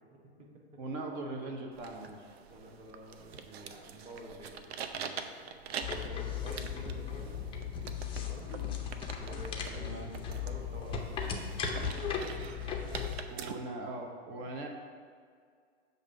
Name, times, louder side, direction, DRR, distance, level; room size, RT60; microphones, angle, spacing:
voice 1, 0.1-0.5 2.5-7.5 8.1-8.5 9.2-10.0 10.3-11.7 12.0-12.5 14.4-14.5, right 1 dB, 20° right, -1 dB, 1.0 m, -49 dB
voice 2, 0.8-2.4 9.8-10.1 13.3-14.7, right 2 dB, 45° right, 2 dB, 1.0 m, -40 dB
sound 1, 1.7-13.5, right 7 dB, 70° right, 0.5 m, -45 dB
sound 2, 5.8-13.2, left 7 dB, 15° left, 0.5 m, -37 dB
6.8 x 2.7 x 5.6 m, 2.1 s
hypercardioid pair, 120°, 32 cm